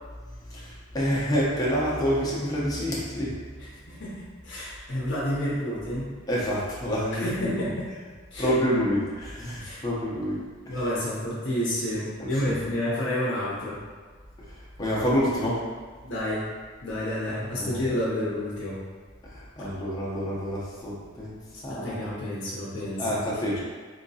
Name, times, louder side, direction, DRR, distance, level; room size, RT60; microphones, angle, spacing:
voice 1, 0.5-3.4 6.3-7.5 8.4-10.4 10.7-10.8 12.2-12.5 14.8-15.6 17.3-17.8 19.3-21.3 21.6-22.0 23.0-23.6, equal, 20° left, -7 dB, 0.7 m, -28 dB
voice 2, 3.9-6.1 7.1-7.9 8.3-8.5 9.6-9.8 10.7-13.8 16.0-16.4 16.8-18.8 21.7-23.2, left 1 dB, 65° left, -7 dB, 0.7 m, -30 dB
3.7 x 2.8 x 2.7 m, 1.5 s
head